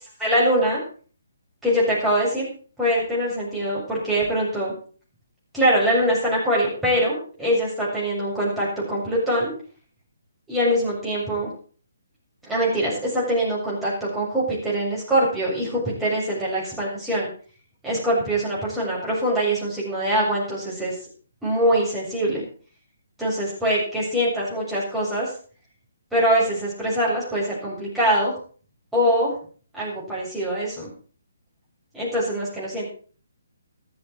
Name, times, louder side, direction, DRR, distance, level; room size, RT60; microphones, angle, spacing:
voice 1, 0.2-0.8 1.6-2.5 2.8-4.7 5.5-9.5 10.5-11.5 12.5-17.3 17.8-20.9 21.4-22.4 23.2-25.3 26.1-28.3 28.9-29.3 29.7-30.9 31.9-32.9, equal, 5° right, -7 dB, 7.3 m, -23 dB
14.0 x 13.5 x 4.7 m, 0.41 s
figure-of-eight pair, 135°, 0 cm